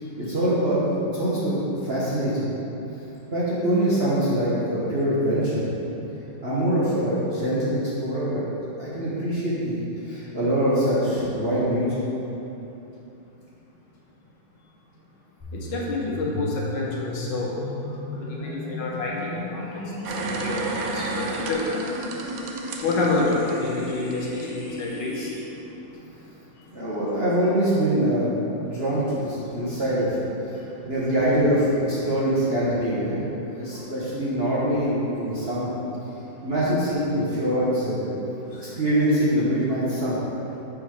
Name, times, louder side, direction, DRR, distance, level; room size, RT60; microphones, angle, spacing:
voice 1, 0.2-2.5 3.3-5.6 6.4-8.4 8.8-11.9 26.7-30.2 30.4-33.2 33.5-35.7 36.4-38.1 38.6-40.2, right 1 dB, 40° right, -9 dB, 0.9 m, -24 dB
sound 1, 15.4-25.4, left 1 dB, 30° left, 1.4 m, -35 dB
voice 2, 15.5-17.6 18.2-21.6 22.8-25.3 33.7-33.9 38.3-38.6, left 3 dB, 65° left, -3 dB, 1.5 m, -28 dB
sound 2, 20.0-24.4 24.8-24.9, right 3 dB, 85° right, 0.7 m, -32 dB
6.5 x 4.4 x 4.7 m, 3.0 s
omnidirectional pair, 2.2 m